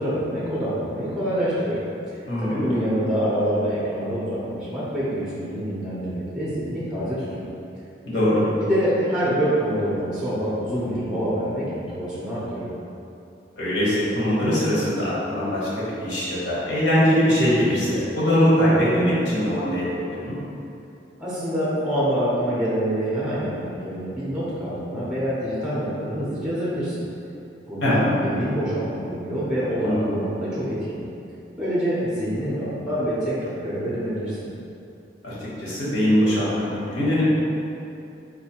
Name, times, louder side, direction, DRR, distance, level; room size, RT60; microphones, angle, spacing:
voice 1, 0.0-1.8 2.1-7.5 8.6-12.7 21.2-27.0 27.7-31.0 31.6-34.4, equal, 5° right, -9 dB, 0.6 m, -26 dB
voice 2, 2.3-2.7 8.0-8.4 13.6-15.7 16.0-20.3 27.8-28.1 29.8-30.2 35.2-37.2, equal, 80° left, -9 dB, 1.2 m, -22 dB
3.9 x 2.6 x 2.8 m, 2.7 s
head